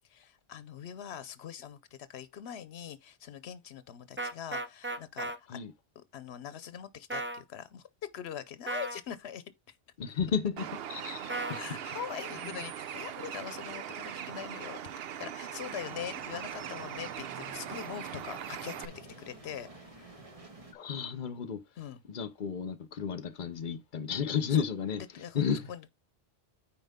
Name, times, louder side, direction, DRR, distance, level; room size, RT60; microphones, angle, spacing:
voice 1, 0.0-5.6 6.0-7.8 8.1-9.8 11.5-14.8 15.2-20.1 21.8-22.0 24.5-24.6 25.1-25.4 25.7-25.9, left 9 dB, 90° left, 0.9 m, -43 dB
sound 1, 4.2-5.4 7.1-7.4 8.7-9.0 11.3-11.6, right 2 dB, 15° right, 0.6 m, -35 dB
voice 2, 10.0-11.8 20.7-21.6 22.1-25.0 25.3-25.7, left 7 dB, 55° left, 0.9 m, -33 dB
Bird, 10.6-18.9, right 9 dB, 70° right, 0.8 m, -40 dB
sound 2, 15.6-20.7, right 2 dB, 35° right, 1.7 m, -50 dB
9.3 x 4.5 x 3.6 m
omnidirectional pair, 1.1 m